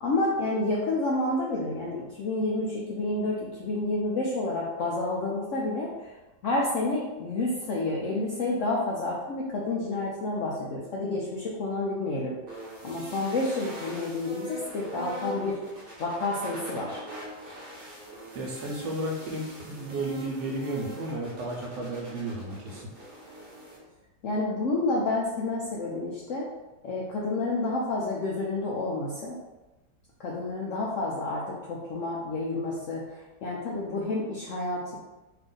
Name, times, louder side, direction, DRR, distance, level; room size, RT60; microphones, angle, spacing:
voice 1, 0.0-6.1 6.4-12.4 12.8-15.6 16.0-17.0 24.2-26.5 26.8-29.4 30.2-35.0, left 2 dB, 75° left, -4 dB, 0.7 m, -29 dB
sound 1, 12.5-23.8, right 1 dB, 40° right, 1.0 m, -42 dB
voice 2, 18.3-22.9, right 1 dB, 85° right, -1 dB, 1.4 m, -33 dB
3.3 x 2.5 x 3.7 m, 1.1 s
omnidirectional pair, 1.9 m